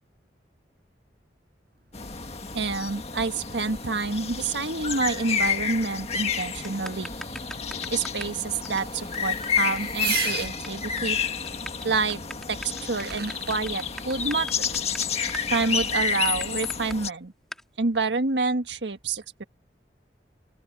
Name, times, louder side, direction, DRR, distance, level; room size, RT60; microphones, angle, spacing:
Fireworks, 1.7-10.5 12.1-12.2 12.7-13.6, right 12 dB, 60° right, 6.6 m, -40 dB
sound 1, 1.9-17.1, left 6 dB, 35° left, 1.6 m, -30 dB
voice 1, 2.5-7.1 7.9-11.2 11.8-12.2 12.5-14.6 15.5-17.3 17.8-19.4, right 3 dB, 90° right, 1.5 m, -28 dB
sound 2, 6.6-8.4 8.6-8.8 9.1-9.2 9.4-9.5 9.8-9.9 10.1-10.7 11.0-11.1 11.5-17.0 17.5-17.6, equal, ahead, 2.0 m, -40 dB
open air
head